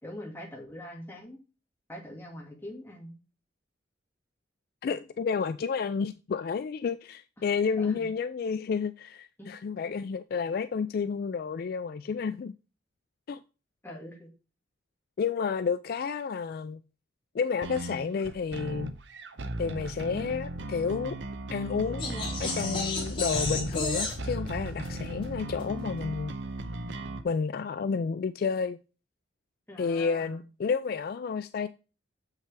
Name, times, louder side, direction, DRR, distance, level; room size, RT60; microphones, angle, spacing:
voice 1, 0.0-1.4 1.9-3.1 7.8-8.1 9.4-9.5 13.8-14.3 29.7-30.4, left 1 dB, 10° left, 1.9 m, -43 dB
voice 2, 4.8-12.5 13.3-13.4 15.2-16.8 17.3-18.9 19.6-21.2 21.5-22.0 22.4-26.3 27.2-28.8 29.8-31.7, left 5 dB, 50° left, 0.3 m, -30 dB
sound 1, 17.6-27.2, right 2 dB, 70° right, 0.7 m, -38 dB
sound 2, 22.0-26.2, left 2 dB, 30° left, 2.2 m, -34 dB
7.4 x 5.6 x 3.3 m
head